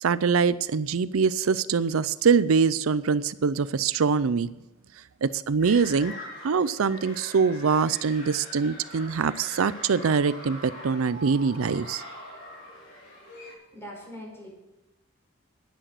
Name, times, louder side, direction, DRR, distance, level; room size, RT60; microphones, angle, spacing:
voice 1, 0.0-4.5 5.2-6.1 6.4-12.0, right 5 dB, 85° right, 16 dB, 0.5 m, -24 dB
sound 1, 5.6-13.5, left 1 dB, 55° left, 5.2 m, -43 dB
voice 2, 13.7-14.5, equal, 10° left, -2 dB, 5.2 m, -41 dB
10.5 x 10.0 x 7.7 m, 1.0 s
head